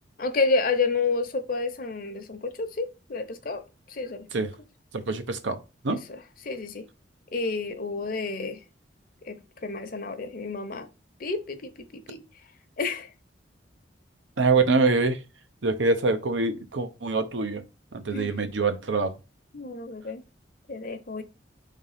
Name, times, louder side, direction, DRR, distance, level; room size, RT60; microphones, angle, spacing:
voice 1, 0.2-4.3 5.9-6.9 7.3-8.6 9.2-10.9 11.2-12.2 12.8-13.1 18.1-18.3 19.5-20.2 20.7-21.2, left 4 dB, 50° left, 0.8 m, -30 dB
voice 2, 4.9-5.6 5.8-6.0 14.4-15.2 15.6-17.6 17.9-19.1, right 3 dB, 85° right, 0.9 m, -24 dB
4.8 x 3.6 x 5.6 m
head